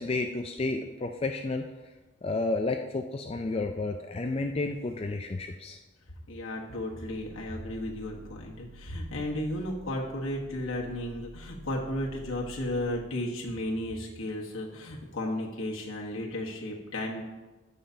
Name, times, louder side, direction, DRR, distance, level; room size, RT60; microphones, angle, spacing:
voice 1, 0.0-1.6 2.2-5.8, left 3 dB, 30° left, 5 dB, 0.3 m, -31 dB
voice 2, 6.3-17.2, left 1 dB, 90° left, -2 dB, 1.3 m, -34 dB
sound 1, 6.9-12.9, equal, 70° right, 0.8 m, -49 dB
15.0 x 5.7 x 2.8 m, 1.2 s
head